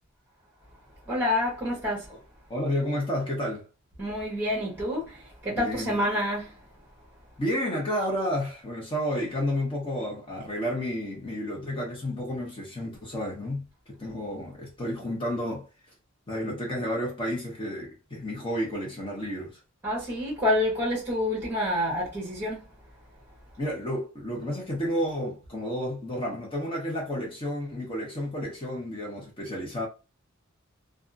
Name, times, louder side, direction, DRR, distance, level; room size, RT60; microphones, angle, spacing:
voice 1, 1.1-2.1 4.0-5.2 5.4-6.6 19.8-22.7, left 1 dB, 10° right, 1.0 m, -27 dB
voice 2, 2.5-3.6 5.5-6.0 7.4-15.6 16.3-19.6 23.6-29.9, equal, 25° left, 0.9 m, -31 dB
2.6 x 2.4 x 2.5 m
head